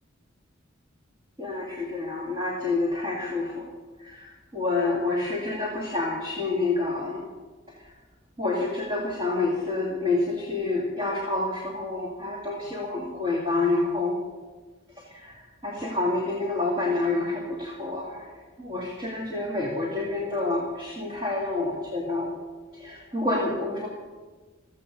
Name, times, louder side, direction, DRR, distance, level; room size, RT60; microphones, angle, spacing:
voice 1, 1.4-3.6 4.1-4.2 4.5-7.2 8.4-14.2 15.2-15.3 15.6-18.2 18.6-22.3 22.8-23.9, left 2 dB, 25° right, -3 dB, 2.5 m, -28 dB
15.5 x 15.0 x 5.4 m, 1.3 s
head